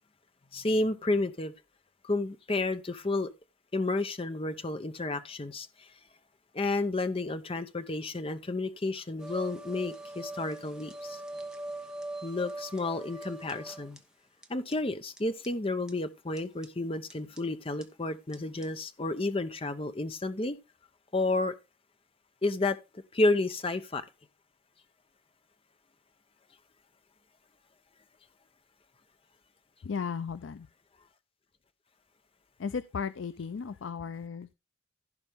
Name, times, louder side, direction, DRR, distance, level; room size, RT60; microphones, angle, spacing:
voice 1, 0.5-1.5 2.0-3.3 3.7-5.7 6.5-11.2 12.2-14.0 14.5-20.6 21.1-21.5 22.4-22.8 23.1-24.0, left 2 dB, 30° left, 0.7 m, -31 dB
sound 1, 9.2-14.0 14.4-14.5 14.7-14.8 15.2-15.3 15.4-15.5 15.9-16.0 16.4-16.7 17.1-17.4 17.8-17.9 18.3-18.4 18.6-18.7, right 2 dB, 5° right, 0.9 m, -41 dB
voice 2, 29.8-30.7 32.6-34.5, left 6 dB, 75° left, 0.4 m, -35 dB
15.5 x 5.2 x 3.5 m
head